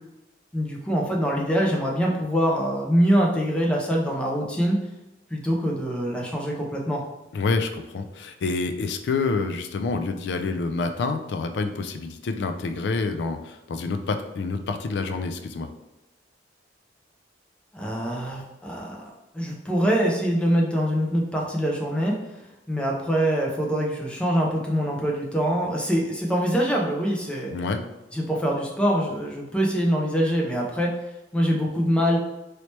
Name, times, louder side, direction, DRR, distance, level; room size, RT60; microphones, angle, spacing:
voice 1, 0.5-4.8 5.3-7.0 17.7-22.2 22.7-27.5 28.1-30.9 31.3-32.2, equal, 5° left, -2 dB, 0.6 m, -24 dB
voice 2, 7.3-15.7 27.5-27.8, left 4 dB, 65° left, 7 dB, 0.3 m, -27 dB
3.2 x 2.9 x 3.0 m, 0.98 s
head